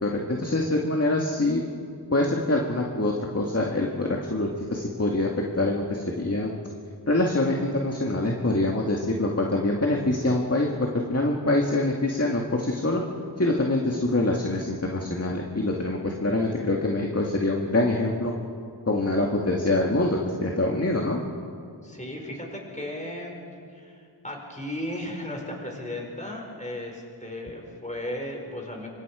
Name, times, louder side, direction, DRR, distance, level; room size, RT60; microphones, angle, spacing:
voice 1, 0.0-1.6 2.1-5.3 5.6-6.5 7.1-13.0 13.4-18.3 18.9-21.2, left 2 dB, 30° left, 0 dB, 1.8 m, -25 dB
voice 2, 21.8-23.4 23.7-28.9, left 1 dB, 15° left, 0 dB, 5.0 m, -35 dB
25.0 x 24.5 x 4.9 m, 2.3 s
wide cardioid pair, 50°, 45 cm